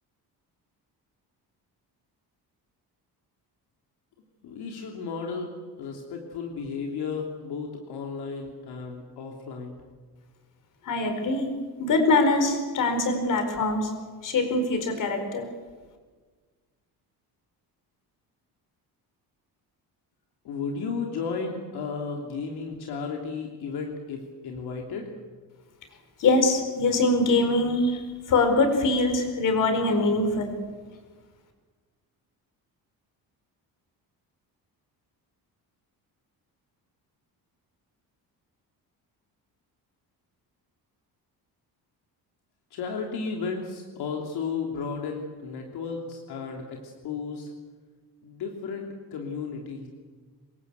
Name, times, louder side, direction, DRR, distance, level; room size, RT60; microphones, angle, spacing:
voice 1, 4.4-9.8 20.4-25.1 42.7-47.5 48.2-49.9, left 5 dB, 75° left, 1 dB, 3.2 m, -34 dB
voice 2, 10.9-11.5 11.8-13.9 14.2-15.5 26.2-28.0 28.3-30.5, left 2 dB, 55° left, 7 dB, 4.7 m, -23 dB
26.5 x 22.0 x 8.3 m, 1.4 s
cardioid pair, 180°, 38 cm